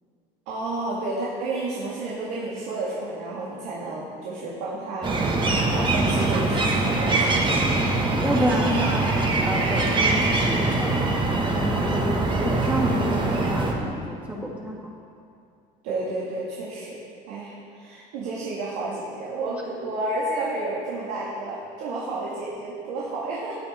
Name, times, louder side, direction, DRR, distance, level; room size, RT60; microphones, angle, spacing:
voice 1, 0.5-7.6 15.8-17.0 17.3-23.6, right 2 dB, 90° right, -5 dB, 2.1 m, -31 dB
sound 1, 5.0-13.7, right 2 dB, 25° right, 1.6 m, -23 dB
voice 2, 8.0-9.0 9.4-14.8, equal, 5° right, -3 dB, 2.3 m, -29 dB
15.5 x 8.9 x 4.4 m, 2.5 s
cardioid pair, 115°, 18 cm